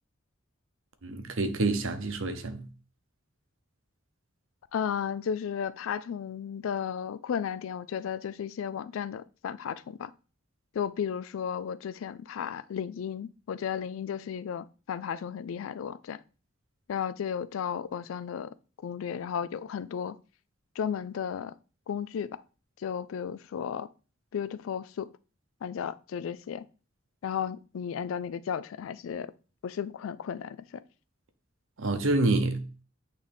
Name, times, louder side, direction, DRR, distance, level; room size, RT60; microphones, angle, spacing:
voice 1, 1.0-2.6 31.8-32.6, right 2 dB, 80° right, 0.8 m, -27 dB
voice 2, 4.7-10.1 10.7-16.2 16.9-18.5 18.8-20.2 20.8-21.5 21.9-22.4 22.8-23.9 24.3-25.1 25.6-26.6 27.2-29.3 29.6-30.6, left 8 dB, 85° left, 0.3 m, -34 dB
8.6 x 3.2 x 3.4 m
head